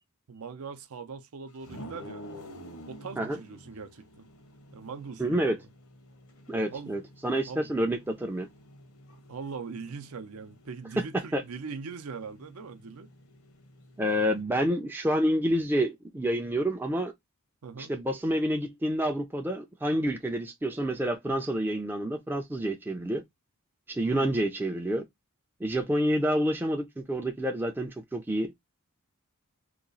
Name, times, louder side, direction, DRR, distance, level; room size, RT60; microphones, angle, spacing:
voice 1, 0.3-2.2 2.9-4.3 4.7-5.7 6.7-7.0 7.5-7.7 9.3-13.1 17.6-17.9 24.0-24.4, right 5 dB, 75° right, 0.5 m, -41 dB
sound 1, 1.6-14.4, equal, 85° left, 0.9 m, -50 dB
voice 2, 5.2-5.6 6.5-8.5 11.1-11.4 14.0-17.1 17.8-23.2 23.9-25.0 25.6-28.5, equal, 10° right, 0.4 m, -28 dB
2.9 x 2.3 x 3.8 m
head